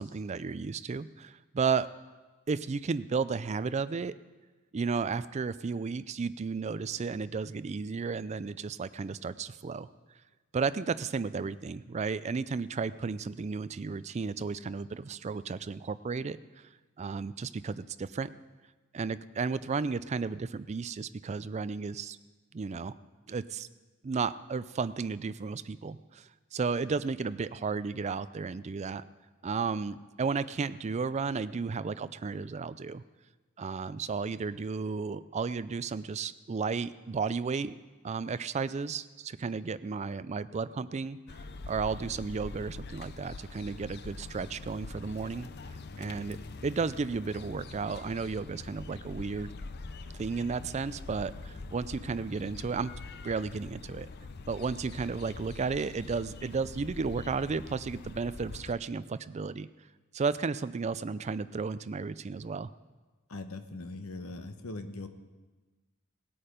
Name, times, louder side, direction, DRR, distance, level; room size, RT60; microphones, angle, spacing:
voice 1, 0.0-1.9 2.5-4.1 4.7-9.9 10.5-16.7 17.0-18.3 18.9-22.2 22.5-22.9 23.3-23.7 24.0-29.0 29.4-33.0 33.6-37.7 38.0-41.2 41.7-45.5 46.0-46.4 46.6-49.5 50.2-52.9 53.2-54.1 54.5-59.7 60.1-62.7, right 5 dB, 30° right, 15 dB, 0.3 m, -33 dB
sound 1, 41.3-58.7, left 3 dB, 45° left, 0.5 m, -44 dB
voice 2, 63.3-65.1, left 2 dB, 75° left, 8 dB, 1.0 m, -40 dB
18.0 x 8.7 x 5.1 m, 1.2 s
head